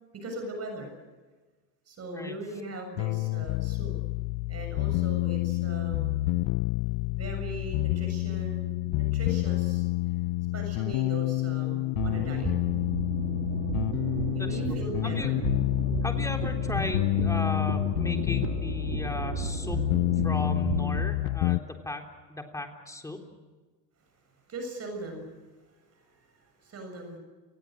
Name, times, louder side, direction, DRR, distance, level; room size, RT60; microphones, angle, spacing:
voice 1, 0.1-0.9 1.9-3.9 4.5-6.2 7.2-9.9 10.5-12.5 14.3-15.4 24.5-25.4 25.7-27.2, right 1 dB, 30° right, 4 dB, 7.1 m, -39 dB
sound 1, 3.0-21.6, left 20 dB, 45° left, 0.7 m, -28 dB
sound 2, 12.0-21.1, right 10 dB, 65° right, 2.8 m, -34 dB
voice 2, 16.0-19.8 20.2-22.0 22.3-23.2, left 1 dB, 5° left, 3 dB, 3.7 m, -36 dB
30.0 x 20.5 x 6.5 m, 1.3 s
supercardioid pair, 115°, 49 cm